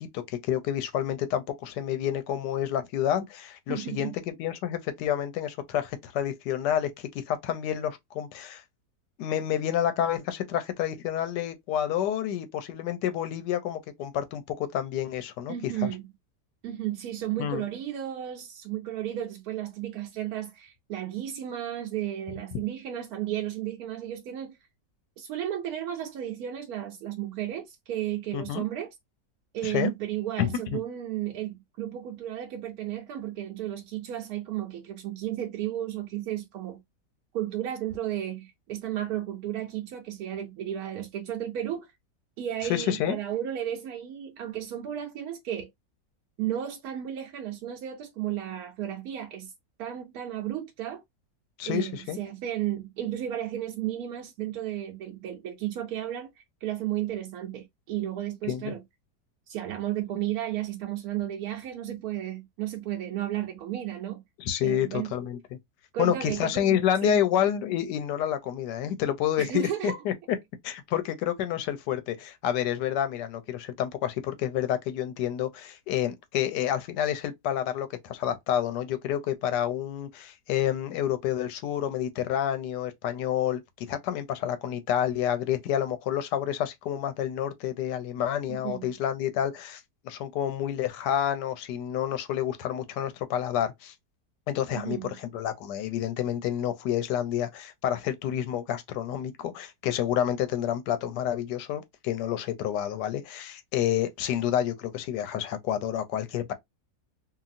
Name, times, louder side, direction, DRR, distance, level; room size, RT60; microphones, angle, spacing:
voice 1, 0.0-8.6 9.2-15.9 17.4-17.6 28.3-28.6 29.6-29.9 30.4-30.8 42.7-43.2 51.6-52.2 58.5-58.7 64.4-65.6 66.0-70.4 70.6-93.9 94.5-106.5, left 10 dB, 90° left, 1.2 m, -29 dB
voice 2, 3.7-4.1 15.5-16.1 16.6-24.6 25.2-28.9 29.5-36.8 37.3-41.9 42.4-45.7 46.4-49.5 49.8-51.0 51.7-56.3 56.6-58.8 59.5-64.2 64.6-65.1 65.9-67.2 69.4-70.0 88.5-88.9 94.7-95.2, right 12 dB, 70° right, 1.0 m, -33 dB
2.8 x 2.6 x 2.5 m
omnidirectional pair, 1.8 m